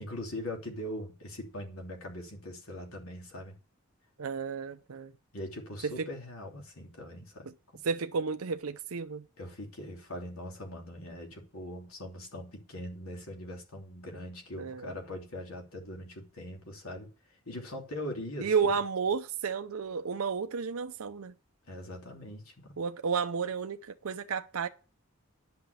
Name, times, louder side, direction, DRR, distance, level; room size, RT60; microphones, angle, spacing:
voice 1, 0.0-3.6 5.3-7.5 9.4-18.7 21.7-22.8, left 1 dB, 85° left, 3.2 m, -41 dB
voice 2, 4.2-5.1 5.8-6.1 7.8-9.2 14.6-14.9 18.4-21.3 22.8-24.7, right 5 dB, 90° right, 0.6 m, -32 dB
10.5 x 6.0 x 8.2 m
head